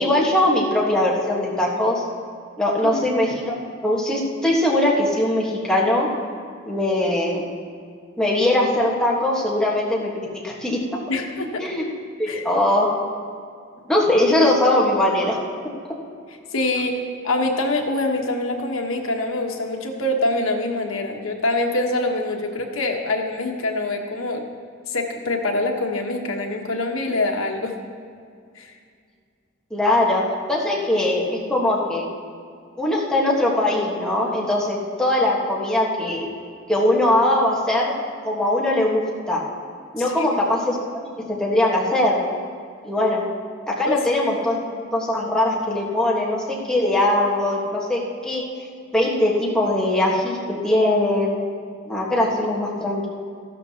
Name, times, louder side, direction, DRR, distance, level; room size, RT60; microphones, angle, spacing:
voice 1, 0.0-2.0 2.6-3.6 3.8-6.1 6.6-7.4 8.2-10.8 11.6-11.8 12.2-12.9 13.9-15.4 29.7-30.2 30.5-31.2 31.5-32.1 32.8-36.2 36.7-37.9 38.2-39.0 39.3-39.4 39.9-40.8 41.0-41.1 41.4-42.2 42.8-43.2 43.7-44.6 44.9-48.4 48.9-51.4 51.9-53.0, left 1 dB, 5° left, -4 dB, 1.4 m, -21 dB
voice 2, 11.1-11.6 12.3-12.4 16.5-17.0 17.2-24.4 24.9-27.7 28.6-28.7 40.0-40.2 43.8-44.0, left 2 dB, 80° left, 2 dB, 1.2 m, -24 dB
14.5 x 12.0 x 2.9 m, 2.2 s
head